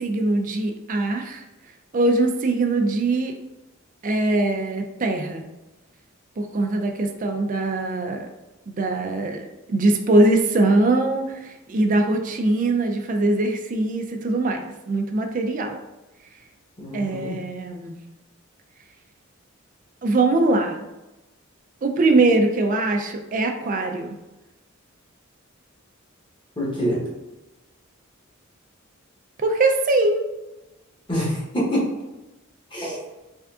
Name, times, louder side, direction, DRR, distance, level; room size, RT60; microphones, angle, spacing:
voice 1, 0.0-1.4 1.9-3.3 4.0-5.5 6.4-8.3 8.7-15.8 16.9-17.9 20.0-20.8 21.8-24.1 29.4-30.3, right 2 dB, 40° right, 4 dB, 0.4 m, -22 dB
voice 2, 16.8-17.4 26.6-27.0 31.1-31.9 32.7-33.0, equal, 25° left, -5 dB, 1.0 m, -25 dB
3.6 x 3.4 x 2.3 m, 1.0 s
head